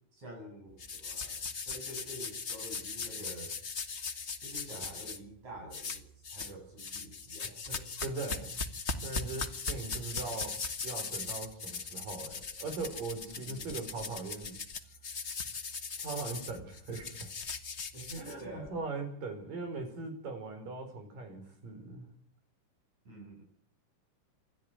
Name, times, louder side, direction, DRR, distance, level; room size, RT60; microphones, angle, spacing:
voice 1, 0.2-3.5 4.4-7.8 13.3-13.8 17.9-18.8 21.4-21.5 23.1-23.4, right 1 dB, 55° right, 0 dB, 9.1 m, -47 dB
sound 1, 0.8-5.2 5.7-6.5 6.8-18.7, left 4 dB, 65° left, 0.6 m, -39 dB
voice 2, 8.0-8.6 9.0-10.6 10.8-14.6 16.0-17.3 18.2-22.1, right 3 dB, 75° right, 6 dB, 6.7 m, -40 dB
28.0 x 12.5 x 9.4 m, 0.62 s
omnidirectional pair, 3.8 m